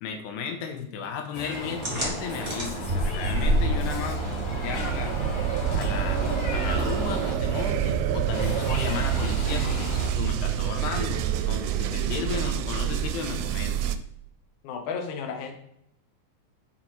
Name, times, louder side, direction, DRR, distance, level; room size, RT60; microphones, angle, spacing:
voice 1, 0.0-4.2 4.6-5.2 5.8-6.3 6.5-9.9 10.2-13.9, left 6 dB, 85° left, 4 dB, 3.1 m, -34 dB
Meow, 1.3-7.3 8.3-10.1, left 2 dB, 50° left, 2.6 m, -35 dB
sound 1, 1.5-14.0, right 10 dB, 80° right, 2.4 m, -28 dB
sound 2, 1.8-9.0, right 1 dB, 40° right, 1.0 m, -30 dB
voice 2, 14.6-15.5, left 5 dB, 70° left, 2 dB, 1.9 m, -33 dB
7.6 x 4.6 x 4.4 m, 0.77 s
omnidirectional pair, 4.7 m